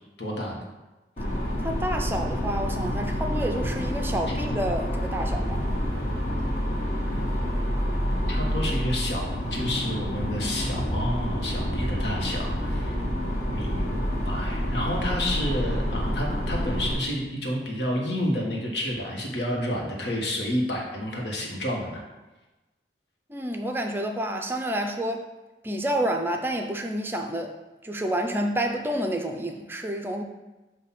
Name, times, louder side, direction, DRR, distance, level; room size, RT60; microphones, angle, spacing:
voice 1, 0.2-0.6 8.3-13.0 13.5-22.0, equal, 80° left, -1 dB, 1.4 m, -30 dB
sound 1, 1.2-16.9, equal, 45° left, 1.4 m, -28 dB
voice 2, 1.6-5.7 23.3-25.3 25.6-27.5 27.8-30.2, right 1 dB, 10° right, 3 dB, 0.4 m, -29 dB
7.5 x 2.7 x 5.8 m, 1.1 s
head